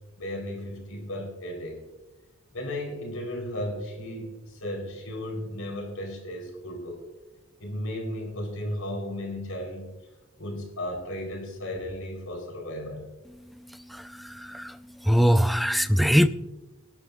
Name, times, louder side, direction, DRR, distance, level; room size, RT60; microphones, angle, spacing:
voice 1, 0.2-1.8 2.5-7.0 7.6-9.9 10.4-13.1, left 1 dB, 85° left, 1 dB, 4.5 m, -35 dB
voice 2, 15.1-16.3, equal, ahead, 10 dB, 0.4 m, -20 dB
22.5 x 12.0 x 2.6 m, 1.0 s
head